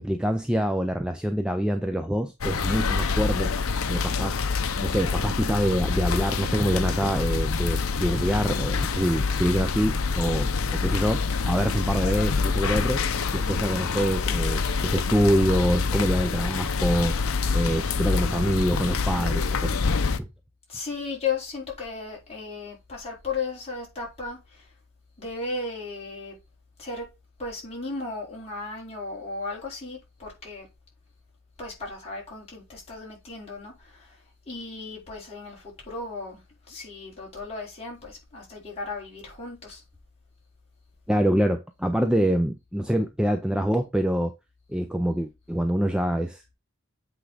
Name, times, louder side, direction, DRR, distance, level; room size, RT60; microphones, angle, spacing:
voice 1, 0.0-3.5 3.9-4.4 4.8-13.0 13.3-19.8 20.2-20.3 41.1-44.3 44.7-46.5, equal, 5° right, 0.4 m, -25 dB
sound 1, 2.4-20.2, left 4 dB, 70° left, 0.7 m, -26 dB
voice 2, 20.7-24.7 25.2-26.3 26.8-27.1 27.4-30.7 31.6-36.4 36.7-39.8, left 4 dB, 30° left, 3.8 m, -35 dB
8.1 x 3.6 x 5.0 m
head